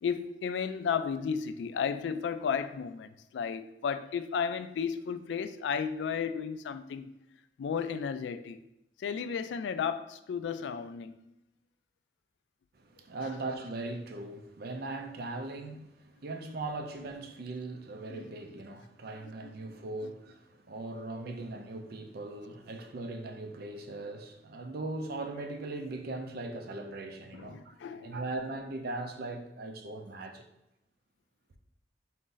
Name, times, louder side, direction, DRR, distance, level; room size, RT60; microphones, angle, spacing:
voice 1, 0.0-7.1 7.6-8.6 9.0-11.2 18.1-18.2 27.3-28.1, left 6 dB, 85° left, 0.3 m, -33 dB
voice 2, 12.7-30.4, right 2 dB, 60° right, 0.5 m, -39 dB
4.0 x 2.6 x 3.8 m
head